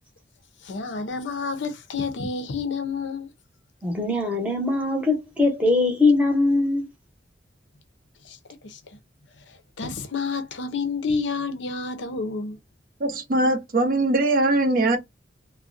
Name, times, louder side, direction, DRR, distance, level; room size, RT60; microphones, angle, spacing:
voice 1, 0.6-3.3 8.2-8.4 8.6-8.8 9.5-12.6, left 4 dB, 80° left, 0.6 m, -29 dB
voice 2, 3.8-6.8, left 2 dB, 5° right, 0.7 m, -21 dB
voice 3, 13.0-15.0, right 2 dB, 50° right, 0.5 m, -21 dB
2.4 x 2.1 x 2.5 m
head